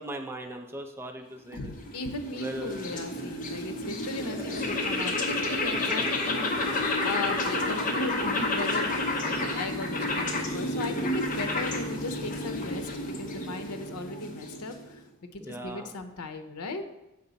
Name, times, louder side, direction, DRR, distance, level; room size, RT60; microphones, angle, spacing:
voice 1, 0.0-1.7 2.3-3.1 4.2-4.6 15.4-15.9, right 1 dB, 10° right, 2 dB, 0.5 m, -39 dB
voice 2, 1.5-15.0 15.3-16.8, left 2 dB, 90° left, 8 dB, 0.7 m, -37 dB
sound 1, 1.6-15.0, left 2 dB, 35° left, 0.8 m, -30 dB
6.8 x 4.8 x 4.0 m, 0.94 s
head